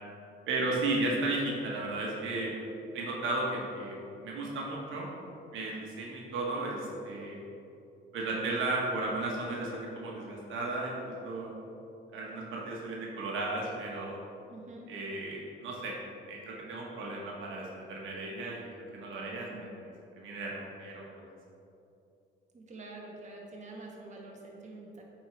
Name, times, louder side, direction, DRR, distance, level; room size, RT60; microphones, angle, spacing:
voice 1, 0.5-2.5 2.9-5.1 5.5-7.4 8.1-11.5 12.1-14.2 14.9-15.9 16.3-18.7 18.9-19.5 20.2-21.3, right 2 dB, 80° right, -3 dB, 1.3 m, -34 dB
voice 2, 14.5-14.9 19.3-19.6 22.5-25.0, right 2 dB, 35° right, -2 dB, 1.6 m, -46 dB
8.6 x 4.4 x 4.6 m, 2.8 s
cardioid pair, 90°, 20 cm